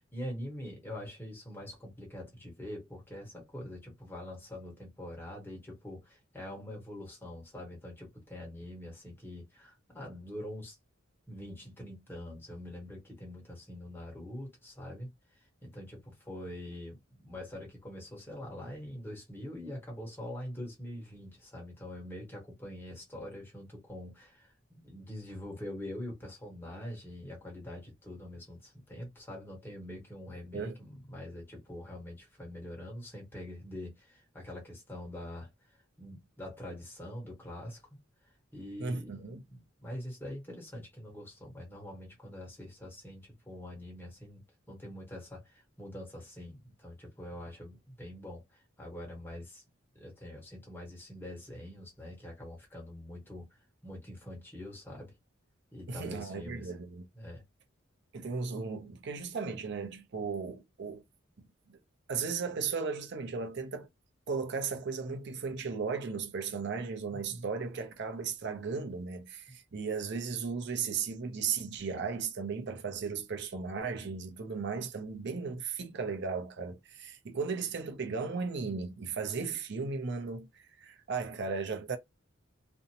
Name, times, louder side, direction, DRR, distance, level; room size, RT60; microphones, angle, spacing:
voice 1, 0.0-10.7 11.3-15.1 15.6-35.5 36.0-37.8 38.5-49.6 49.9-53.5 53.8-55.1 55.7-56.7 57.1-57.4 67.1-67.5, left 1 dB, 10° left, 1.2 m, -44 dB
voice 2, 38.8-39.4 55.9-57.0 58.1-61.0 61.7-61.8 62.1-63.9 64.3-82.0, right 5 dB, 60° right, 0.6 m, -36 dB
2.6 x 2.1 x 2.8 m
head